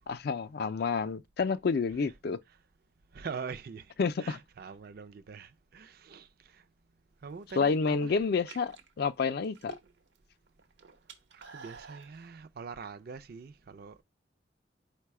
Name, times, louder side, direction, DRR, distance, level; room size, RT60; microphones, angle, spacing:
voice 1, 0.1-2.4 4.0-4.4 7.6-9.8, left 5 dB, 55° left, 0.4 m, -29 dB
voice 2, 3.1-3.9 4.2-6.6 7.2-8.2 11.3-14.0, right 5 dB, 55° right, 0.4 m, -44 dB
sound 1, 7.3-7.8 8.3-10.2 10.5-12.1, right 5 dB, 75° right, 0.8 m, -50 dB
4.7 x 2.2 x 4.6 m
head